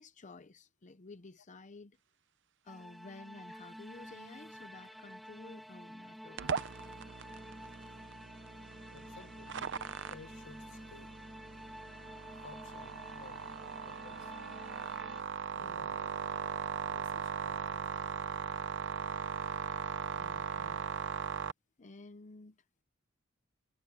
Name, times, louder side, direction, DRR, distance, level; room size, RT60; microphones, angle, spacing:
voice 1, 0.0-2.0 2.6-6.6 15.5-15.9 20.2-20.8 21.8-22.6, left 3 dB, 35° left, 0.7 m, -52 dB
sound 1, 2.7-15.2, equal, ahead, 0.7 m, -50 dB
sound 2, 6.4-21.5, right 6 dB, 60° right, 0.7 m, -39 dB
voice 2, 8.9-9.6 10.1-11.1 12.4-14.6 15.6-16.1 16.6-17.9, left 3 dB, 65° left, 1.0 m, -55 dB
head